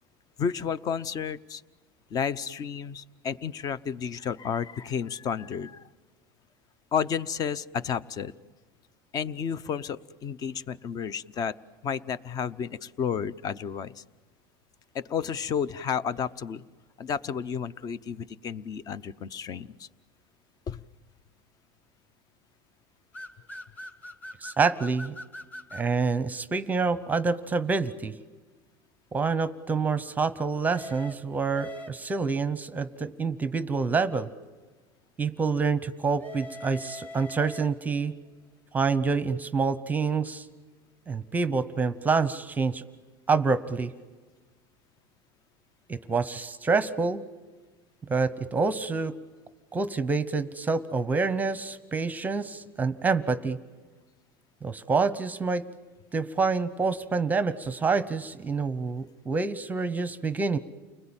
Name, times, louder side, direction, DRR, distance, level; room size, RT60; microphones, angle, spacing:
voice 1, 0.4-1.6 2.1-5.8 6.9-8.3 9.1-11.5 11.8-14.0 14.9-16.6 17.0-19.9 20.7-20.8, left 7 dB, 35° left, 18 dB, 0.8 m, -31 dB
sound 1, 23.1-25.9 30.7-32.3 36.1-38.0, left 1 dB, 15° left, 1.9 m, -42 dB
voice 2, 24.4-25.2 25.7-28.1 29.1-34.3 35.2-38.2 38.7-40.5 41.1-42.8 43.3-43.9 45.9-47.2 48.1-49.1 49.7-53.6 54.6-55.6 56.1-60.6, right 4 dB, 15° right, 14 dB, 0.8 m, -27 dB
30.0 x 20.5 x 8.9 m, 1.3 s
supercardioid pair, 130°, 11 cm